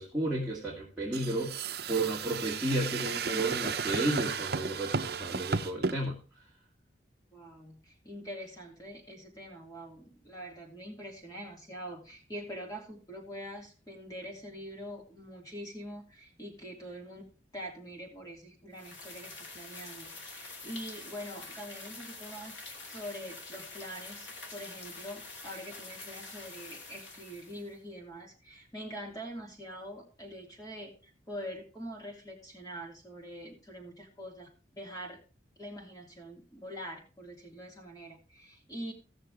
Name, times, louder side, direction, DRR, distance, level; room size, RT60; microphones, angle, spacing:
voice 1, 0.0-6.2, right 1 dB, 5° right, -6 dB, 2.1 m, -32 dB
sound 1, 1.1-6.0, right 5 dB, 60° right, 0.8 m, -34 dB
voice 2, 7.3-17.2 17.5-22.6 22.9-34.5 34.8-35.2 35.6-38.9, equal, 20° left, 0 dB, 3.0 m, -44 dB
sound 2, 18.8-27.8, left 3 dB, 90° left, 2.4 m, -46 dB
17.0 x 6.6 x 3.6 m, 0.35 s
head